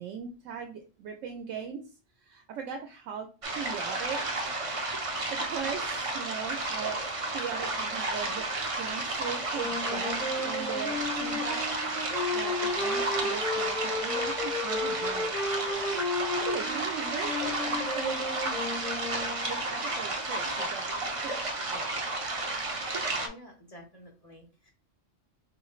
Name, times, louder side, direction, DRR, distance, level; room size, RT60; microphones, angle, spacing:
voice 1, 0.0-1.9 2.2-3.3 3.5-4.2 5.3-8.5 8.8-10.2 10.4-11.6 12.3-15.4 16.4-18.2 19.4-20.9 21.2-21.3 21.7-22.0, right 6 dB, 75° right, 3 dB, 0.9 m, -39 dB
sound 1, 3.4-23.3, right 2 dB, 45° right, 0.4 m, -32 dB
sound 2, 9.5-19.5, left 2 dB, 5° left, 0.9 m, -33 dB
voice 2, 23.2-24.7, left 1 dB, 30° left, 0 dB, 1.1 m, -50 dB
4.7 x 3.0 x 2.4 m, 0.35 s
omnidirectional pair, 1.3 m